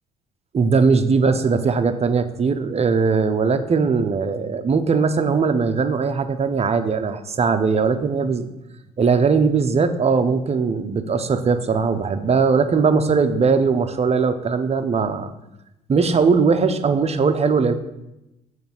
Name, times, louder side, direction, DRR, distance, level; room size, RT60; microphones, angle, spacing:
voice 1, 0.5-8.5 9.0-15.3 15.9-17.7, right 5 dB, 30° right, 9 dB, 0.7 m, -19 dB
6.9 x 3.3 x 5.9 m, 0.94 s
hypercardioid pair, 60°, 20 cm